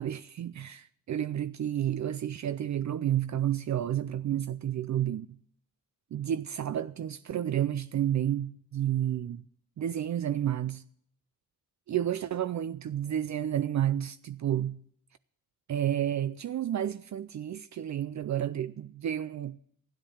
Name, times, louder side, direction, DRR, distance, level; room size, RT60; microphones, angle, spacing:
voice 1, 0.0-5.3 6.1-9.4 9.8-10.8 11.9-14.8 15.7-19.6, right 11 dB, 60° right, 0.5 m, -31 dB
13.0 x 10.0 x 7.0 m
cardioid pair, 85°, 33 cm